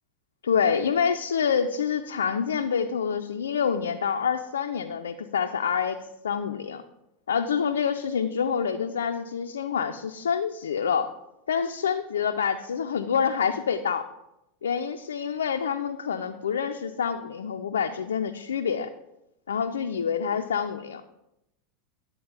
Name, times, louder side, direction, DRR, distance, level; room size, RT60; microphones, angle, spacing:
voice 1, 0.4-6.8 7.3-11.1 11.5-14.1 14.6-18.9 19.5-21.0, left 7 dB, 80° left, 5 dB, 0.4 m, -27 dB
9.5 x 3.5 x 5.3 m, 0.87 s
hypercardioid pair, 90°, 0 cm